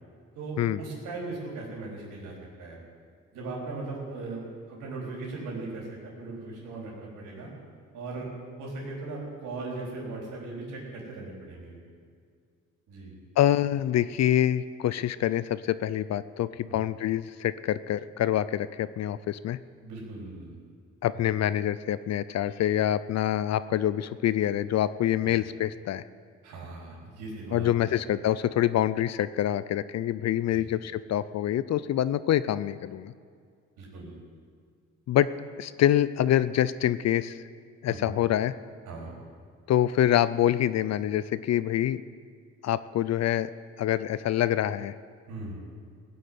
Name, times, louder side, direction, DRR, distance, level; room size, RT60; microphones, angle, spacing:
voice 1, 0.3-2.3 2.6-2.8 3.3-7.5 7.9-8.3 8.6-11.8 12.9-13.2 16.6-16.9 19.8-20.6 25.2-25.4 26.4-27.9 30.5-30.6 33.8-34.1 37.9-38.1 38.9-39.2 45.3-45.6, right 3 dB, 90° right, -3 dB, 4.1 m, -38 dB
voice 2, 13.4-19.6 21.0-26.0 27.5-33.1 35.1-35.3 35.6-37.4 37.8-38.5 39.7-42.0 42.6-43.5 43.8-44.9, left 11 dB, 60° left, 16 dB, 0.5 m, -26 dB
16.0 x 7.9 x 9.5 m, 2.2 s
cardioid pair, 90°, 30 cm